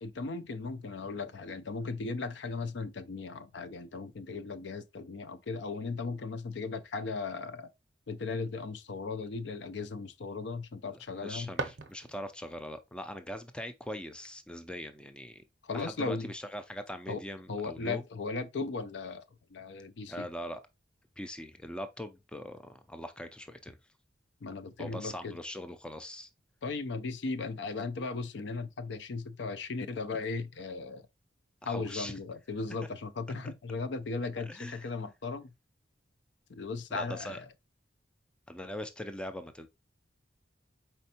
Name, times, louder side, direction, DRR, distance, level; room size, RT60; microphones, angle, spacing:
voice 1, 0.0-7.7 8.1-11.5 15.6-16.3 17.1-17.2 17.5-19.2 19.5-20.3 24.4-25.4 26.6-31.0 31.6-35.5 36.5-37.5, left 4 dB, 70° left, 0.4 m, -37 dB
voice 2, 10.9-15.4 15.7-18.0 20.1-20.6 21.2-23.8 24.8-26.3 31.6-32.1 34.4-34.9 36.9-37.4 38.5-39.7, equal, 5° left, 0.3 m, -41 dB
sound 1, 11.1-12.5, right 3 dB, 65° right, 0.6 m, -40 dB
4.4 x 4.2 x 2.8 m
head